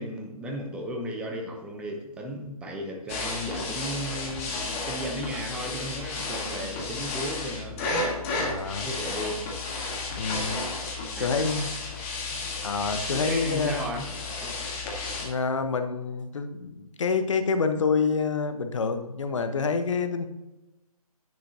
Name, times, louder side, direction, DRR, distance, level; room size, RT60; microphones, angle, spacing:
voice 1, 0.0-8.0 8.8-9.4 10.8-10.9 11.2-11.5 13.1-14.7, equal, 5° right, 2 dB, 0.8 m, -35 dB
sound 1, 3.1-15.3, left 3 dB, 20° left, 1.8 m, -32 dB
voice 2, 8.4-8.9 10.2-10.6 11.2-11.7 12.3-13.9 15.2-20.3, left 4 dB, 55° left, 8 dB, 1.1 m, -27 dB
10.5 x 8.6 x 2.8 m, 1.0 s
figure-of-eight pair, 145°, 19 cm